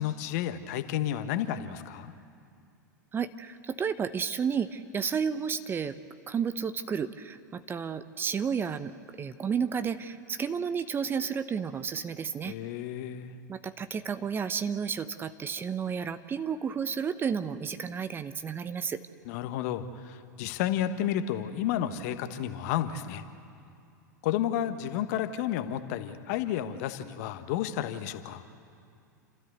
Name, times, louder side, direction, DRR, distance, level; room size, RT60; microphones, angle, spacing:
voice 1, 0.0-2.1 12.4-13.3 19.2-23.2 24.2-28.4, left 11 dB, 50° left, 9 dB, 1.2 m, -31 dB
voice 2, 3.1-5.9 6.3-12.5 13.5-19.0, right 6 dB, 20° right, 12 dB, 0.8 m, -32 dB
29.5 x 13.5 x 8.0 m, 2.4 s
figure-of-eight pair, 90°, 10 cm